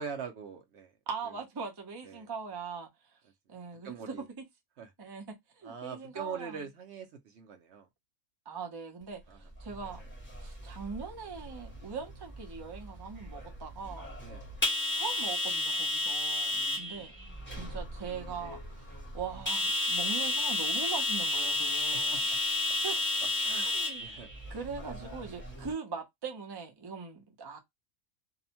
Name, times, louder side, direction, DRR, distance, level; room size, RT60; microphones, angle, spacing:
voice 1, 0.0-0.9 2.0-2.3 3.8-4.3 4.8-4.9 5.6-7.9 9.3-9.4 14.2-14.4 16.5-17.1 21.9-22.2 23.4-24.3, right 6 dB, 65° right, 0.8 m, -43 dB
voice 2, 1.1-2.9 3.5-4.4 5.0-5.2 5.6-6.6 8.5-10.0 10.4-14.1 14.9-17.1 17.5-22.2 22.8-23.2 23.6-24.0 24.5-27.6, right 5 dB, 30° right, 0.4 m, -41 dB
sound 1, 9.6-25.7, left 2 dB, 10° left, 0.9 m, -33 dB
2.6 x 2.1 x 2.8 m
omnidirectional pair, 1.4 m